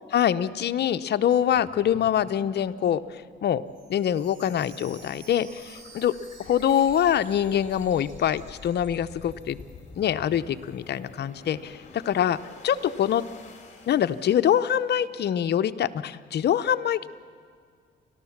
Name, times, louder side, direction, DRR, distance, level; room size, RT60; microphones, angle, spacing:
voice 1, 0.1-3.6 3.9-6.1 6.4-9.6 10.0-12.4 12.6-13.2 13.9-17.1, left 10 dB, 60° left, 10 dB, 0.7 m, -24 dB
sound 1, 1.5-14.9, left 4 dB, 35° left, 3.3 m, -49 dB
Chime, 3.7-9.6 9.9-10.0 10.6-10.7, right 4 dB, 65° right, 5.1 m, -52 dB
30.0 x 12.5 x 7.3 m, 2.1 s
cardioid pair, 90°, 20 cm